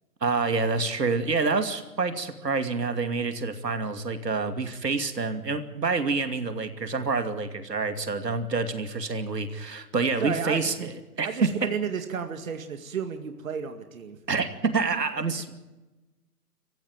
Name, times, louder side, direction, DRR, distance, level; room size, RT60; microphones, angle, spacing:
voice 1, 0.2-10.9 11.2-11.5 14.3-15.6, right 4 dB, 80° right, 8 dB, 2.7 m, -27 dB
voice 2, 10.2-10.9 11.2-14.2, right 7 dB, 55° right, 7 dB, 2.2 m, -32 dB
26.5 x 15.0 x 8.9 m, 1.1 s
figure-of-eight pair, 145°, 48 cm